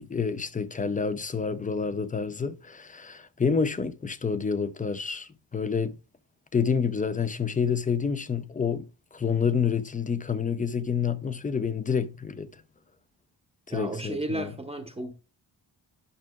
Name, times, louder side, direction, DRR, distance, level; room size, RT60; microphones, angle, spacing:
voice 1, 0.0-5.9 6.5-8.9 9.1-12.5 13.7-14.5, left 6 dB, 20° left, 0.5 m, -28 dB
voice 2, 13.7-15.1, right 2 dB, 15° right, 0.9 m, -33 dB
11.0 x 5.8 x 2.3 m
wide cardioid pair, 135°, 41 cm